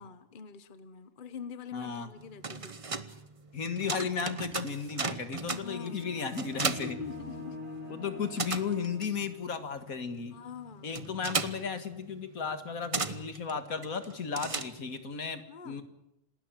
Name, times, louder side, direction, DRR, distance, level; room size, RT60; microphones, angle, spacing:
voice 1, 0.0-2.8 5.5-6.1 6.8-7.6 8.1-8.2 10.3-10.9 15.5-15.8, left 6 dB, 40° left, 13 dB, 1.2 m, -44 dB
voice 2, 1.7-2.1 3.5-7.0 7.9-10.4 10.8-15.8, left 6 dB, 85° left, 9 dB, 2.2 m, -35 dB
sound 1, 2.2-7.8 8.0-15.1, right 4 dB, 25° right, 0.9 m, -37 dB
sound 2, 5.7-9.7, left 2 dB, 75° right, 5.2 m, -45 dB
27.5 x 13.0 x 9.0 m, 0.84 s
omnidirectional pair, 1.4 m